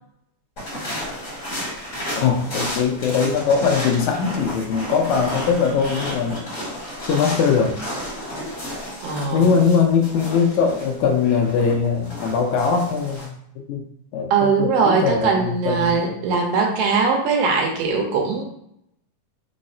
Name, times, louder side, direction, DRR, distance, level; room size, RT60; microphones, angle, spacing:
sound 1, 0.6-13.2, equal, 55° left, 0.9 m, -32 dB
voice 1, 2.1-6.5 7.0-7.8 9.3-13.3 13.7-13.8 14.1-16.0, left 6 dB, 85° left, 2 dB, 1.7 m, -21 dB
voice 2, 9.0-9.4 14.3-18.4, right 5 dB, 85° right, 0 dB, 2.4 m, -20 dB
5.4 x 2.0 x 2.6 m, 0.74 s
omnidirectional pair, 3.9 m